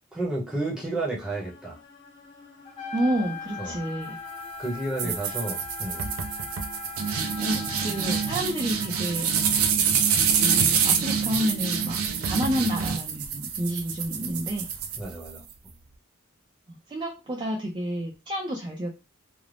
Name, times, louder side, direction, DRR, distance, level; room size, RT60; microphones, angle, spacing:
voice 1, 0.1-1.8 3.6-3.8 4.6-6.1 15.0-15.4, right 2 dB, 5° right, -4 dB, 0.7 m, -31 dB
sound 1, 1.2-9.7, left 2 dB, 60° left, 0.9 m, -48 dB
Trumpet, 2.7-8.5, left 5 dB, 25° left, 0.8 m, -40 dB
voice 2, 2.9-4.2 5.0-5.3 7.1-9.3 10.4-14.6 16.7-18.9, equal, 25° right, -1 dB, 0.4 m, -30 dB
sound 2, 5.0-15.5, right 6 dB, 90° right, 0.4 m, -26 dB
2.5 x 2.0 x 3.2 m, 0.27 s
head